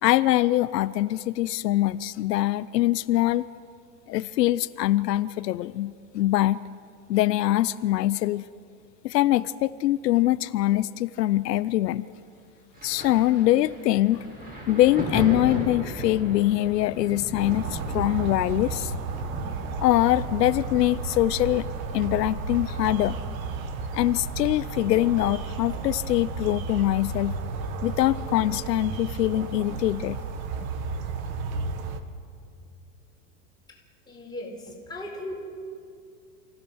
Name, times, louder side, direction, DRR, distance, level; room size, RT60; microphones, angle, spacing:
voice 1, 0.0-3.5 4.1-6.6 7.1-8.5 9.0-12.1 12.8-14.2 14.7-18.9 19.8-21.7 21.9-23.2 23.9-27.3 27.8-30.2, left 15 dB, 85° left, 15 dB, 0.7 m, -23 dB
Thunder, 12.7-26.1 26.3-27.7 28.5-28.7, right 1 dB, 20° right, 6.5 m, -38 dB
sound 1, 17.4-32.0, right 4 dB, 60° right, 1.9 m, -33 dB
voice 2, 34.1-35.4, left 1 dB, 10° left, -2 dB, 4.4 m, -38 dB
28.5 x 16.0 x 6.3 m, 2.4 s
supercardioid pair, 140°, 47 cm